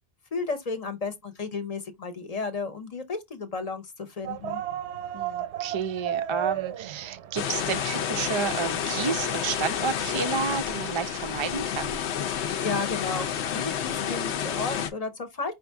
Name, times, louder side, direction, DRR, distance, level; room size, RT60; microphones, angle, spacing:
voice 1, 0.3-4.6 12.6-15.5, left 4 dB, 40° left, 0.8 m, -33 dB
sound 1, 4.2-10.1, right 10 dB, 85° right, 0.9 m, -35 dB
voice 2, 5.1-12.0, right 6 dB, 50° right, 0.3 m, -31 dB
sound 2, 7.4-14.9, left 8 dB, 80° left, 0.9 m, -30 dB
5.0 x 2.6 x 3.4 m
omnidirectional pair, 1.1 m